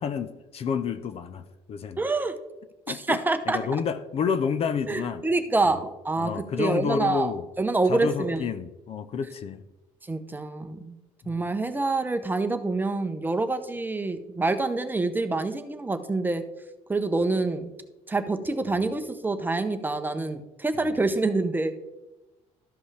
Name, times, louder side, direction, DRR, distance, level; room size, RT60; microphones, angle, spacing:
voice 1, 0.0-2.0 2.9-3.2 3.5-5.2 5.6-5.8 6.2-7.5 7.9-9.6 11.2-11.4 20.8-20.9, left 6 dB, 50° left, 12 dB, 0.6 m, -30 dB
voice 2, 2.0-2.3 2.9-3.6 4.9-7.3 7.6-8.4 10.1-10.9 11.3-16.4 16.9-17.7 18.1-21.7, right 3 dB, 15° right, 8 dB, 0.8 m, -26 dB
13.5 x 5.3 x 3.3 m, 1.0 s
cardioid pair, 105°, 13 cm